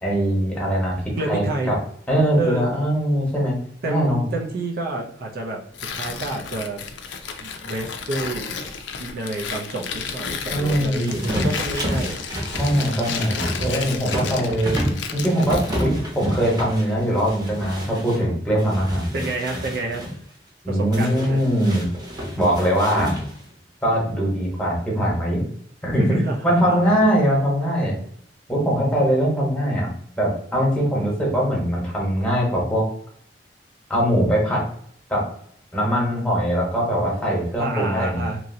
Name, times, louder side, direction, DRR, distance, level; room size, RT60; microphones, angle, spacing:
voice 1, 0.0-1.0 1.3-1.8 2.1-3.6 3.9-4.2 10.5-11.4 12.6-14.8 15.1-19.2 20.6-21.9 22.3-23.1 23.8-25.4 25.8-28.0 28.5-29.9 30.2-32.8 33.9-34.6 35.1-35.2 35.7-38.3, equal, 5° left, -4 dB, 1.1 m, -21 dB
voice 2, 1.2-1.7 2.4-2.7 3.8-5.6 5.9-6.8 7.4-8.5 9.0-12.2 13.6-14.6 19.1-20.0 20.7-21.5 26.0-26.9 37.6-38.4, right 2 dB, 55° right, 0 dB, 0.5 m, -29 dB
Tearing, 5.7-15.9, left 6 dB, 80° left, 0.4 m, -32 dB
sound 1, 11.0-18.2 18.6-20.1 20.9-23.5, equal, 25° right, 0.9 m, -29 dB
3.0 x 2.6 x 2.6 m, 0.64 s
head